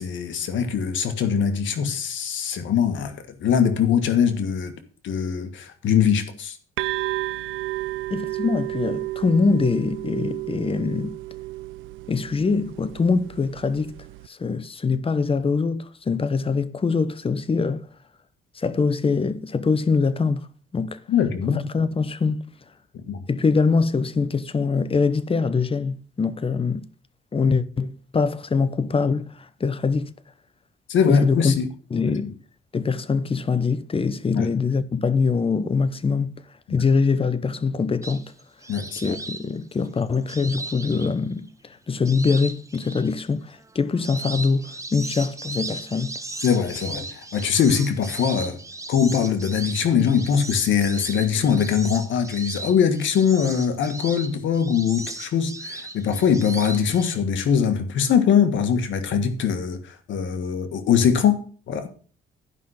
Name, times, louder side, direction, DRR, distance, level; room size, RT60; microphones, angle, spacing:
voice 1, 0.0-4.7 5.0-6.6 21.1-21.6 23.1-23.2 30.9-31.7 34.3-34.5 38.7-39.1 46.4-48.6 48.9-61.9, left 7 dB, 70° left, 1.6 m, -22 dB
sound 1, 6.8-14.3, right 17 dB, 85° right, 0.4 m, -32 dB
voice 2, 8.1-11.2 12.1-13.9 14.3-17.9 18.5-20.5 20.7-21.0 21.5-22.5 23.3-26.9 27.3-30.1 31.1-31.6 31.9-32.3 32.7-36.4 36.7-38.3 39.0-46.2, left 4 dB, 30° left, 0.9 m, -23 dB
sound 2, 38.0-41.5 42.0-43.1 43.6-57.1, right 2 dB, 15° right, 1.4 m, -36 dB
11.0 x 5.6 x 6.4 m
cardioid pair, 90°, 20 cm